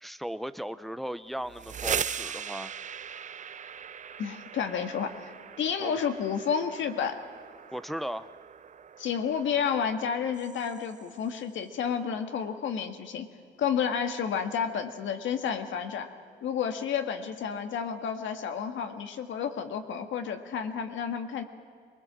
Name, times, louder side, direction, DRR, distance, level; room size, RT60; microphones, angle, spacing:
voice 1, 0.0-2.7 5.8-6.1 7.7-8.3, equal, ahead, 12 dB, 0.7 m, -36 dB
mp carbon, 1.4-11.2, right 7 dB, 40° right, 0.6 m, -39 dB
voice 2, 4.2-5.3 5.6-7.2 9.0-13.3 13.6-16.1 16.4-21.4, left 7 dB, 75° left, 7 dB, 1.9 m, -31 dB
23.0 x 20.5 x 7.5 m, 2.2 s
cardioid pair, 90°, 20 cm